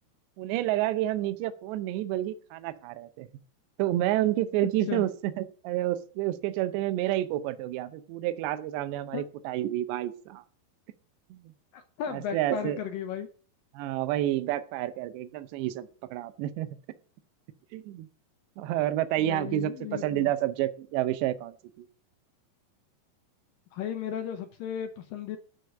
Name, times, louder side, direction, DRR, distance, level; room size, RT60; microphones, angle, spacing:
voice 1, 0.4-3.3 3.8-10.4 11.3-11.4 12.1-12.8 13.7-16.8 17.7-18.1 18.6-21.9, right 14 dB, 80° right, 12 dB, 3.0 m, -29 dB
voice 2, 11.7-13.3 19.2-20.3 23.7-25.4, left 9 dB, 80° left, 7 dB, 2.0 m, -35 dB
13.0 x 5.2 x 8.1 m, 0.42 s
omnidirectional pair, 5.1 m